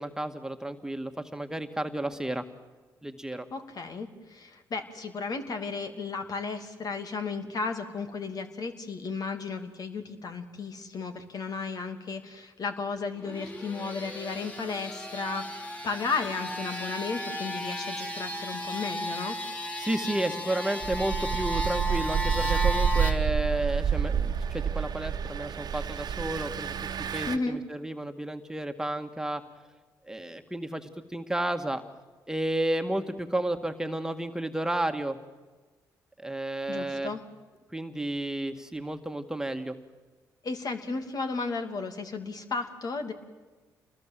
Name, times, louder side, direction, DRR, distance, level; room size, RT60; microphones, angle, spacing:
voice 1, 0.0-2.4 3.0-3.5 19.8-26.7 27.1-29.4 30.1-31.8 32.3-35.2 36.2-37.1 37.7-39.7, right 1 dB, 5° right, 6 dB, 2.0 m, -32 dB
voice 2, 3.5-19.4 27.3-27.6 36.7-37.2 40.4-43.1, left 4 dB, 55° left, 6 dB, 2.8 m, -34 dB
sound 1, 13.2-23.1, equal, 15° left, 3.9 m, -34 dB
Engine, 20.8-27.4, right 7 dB, 60° right, 1.3 m, -29 dB
28.0 x 20.5 x 7.7 m, 1.3 s
supercardioid pair, 55°, 8 cm